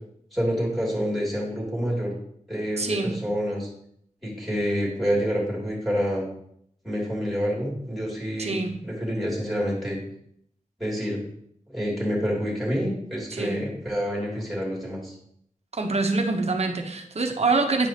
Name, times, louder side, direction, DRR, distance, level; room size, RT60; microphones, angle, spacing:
voice 1, 0.3-2.1 2.5-3.7 4.2-6.2 6.8-8.5 8.8-10.0 10.8-11.2 11.7-15.1, equal, ahead, -4 dB, 2.8 m, -27 dB
voice 2, 2.8-3.2 8.4-8.8 13.3-13.6 15.7-17.9, right 3 dB, 55° right, 5 dB, 0.9 m, -25 dB
9.4 x 4.8 x 2.9 m, 0.70 s
wide cardioid pair, 80°, 13 cm